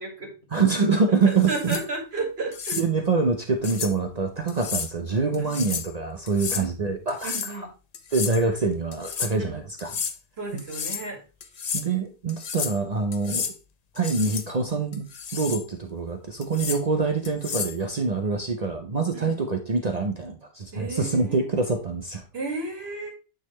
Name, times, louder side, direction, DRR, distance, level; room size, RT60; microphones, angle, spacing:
voice 1, 0.0-0.6 1.1-2.8 5.4-5.6 6.5-6.7 7.2-7.7 9.4-9.6 10.4-11.2 19.1-19.4 20.7-21.5 22.3-23.1, right 3 dB, 65° right, 1 dB, 2.3 m, -33 dB
voice 2, 0.5-1.8 2.8-7.7 8.1-10.0 11.7-13.5 13.9-15.1 15.3-22.2, right 4 dB, 40° right, 5 dB, 0.7 m, -25 dB
sound 1, 1.3-1.8 2.5-2.9 3.6-3.9 4.5-4.9 5.3-5.9 6.3-6.6 7.1-7.6 7.9-8.4 8.9-9.3 9.8-10.2 10.6-11.1 11.4-11.9 12.3-12.8 13.1-13.5 13.9-14.5 14.9-15.6 16.4-16.8 17.2-17.8, left 6 dB, 45° left, 0.6 m, -32 dB
8.8 x 4.0 x 3.1 m, 0.32 s
omnidirectional pair, 1.2 m